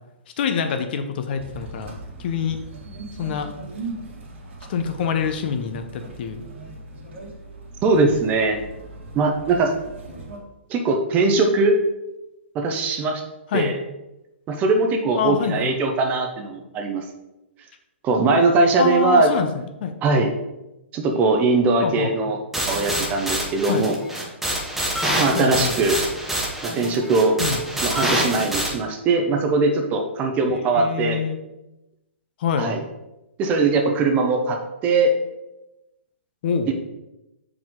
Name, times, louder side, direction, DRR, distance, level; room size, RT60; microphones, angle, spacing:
voice 1, 0.4-1.9 2.2-2.6 3.2-3.5 4.7-6.4 13.5-13.8 15.1-15.7 18.8-20.0 21.8-22.1 23.7-23.9 25.3-25.8 27.4-27.6 30.5-31.4 32.4-32.7 36.4-36.7, left 7 dB, 50° left, 7 dB, 0.7 m, -25 dB
sound 1, 1.4-10.4, right 2 dB, 70° right, 2.0 m, -39 dB
voice 2, 7.8-8.6 9.1-9.7 10.7-11.8 12.5-13.2 13.5-13.8 14.5-17.1 18.0-19.3 20.0-20.3 20.9-22.4 22.7-24.0 25.2-26.0 26.6-27.4 27.8-31.2 32.6-32.8 33.4-35.1 36.7-36.8, right 3 dB, 25° right, 4 dB, 0.7 m, -20 dB
sound 2, 22.5-28.7, right 1 dB, 5° right, 1.0 m, -26 dB
5.8 x 4.9 x 3.7 m, 0.96 s
hypercardioid pair, 150°, 7 cm